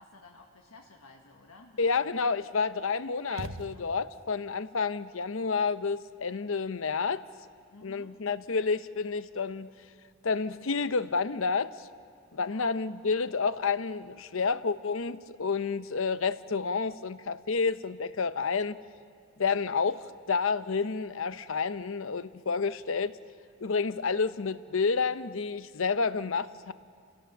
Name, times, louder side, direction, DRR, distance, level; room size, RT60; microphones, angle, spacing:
voice 1, 0.0-2.0 3.7-3.9 7.7-8.2 12.4-12.8, left 3 dB, 80° left, 1 dB, 1.5 m, -53 dB
voice 2, 1.8-7.2 7.8-9.7 10.2-11.9 12.3-18.8 19.4-23.1 23.6-26.7, left 5 dB, 65° left, 14 dB, 0.7 m, -30 dB
sound 1, 3.3-4.3, right 2 dB, 60° right, 0.9 m, -42 dB
29.5 x 16.5 x 7.3 m, 2.2 s
head